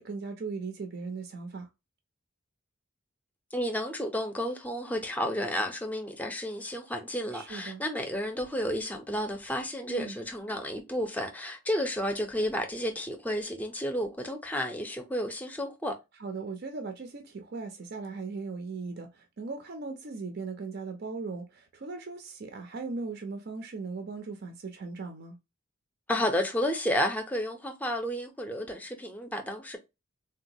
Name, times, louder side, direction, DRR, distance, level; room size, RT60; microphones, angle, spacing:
voice 1, 0.0-1.7 7.3-7.8 9.9-10.2 16.2-25.4, right 4 dB, 50° right, 0.5 m, -38 dB
voice 2, 3.5-16.0 26.1-29.8, equal, 10° left, 0.5 m, -31 dB
3.8 x 2.2 x 2.7 m
head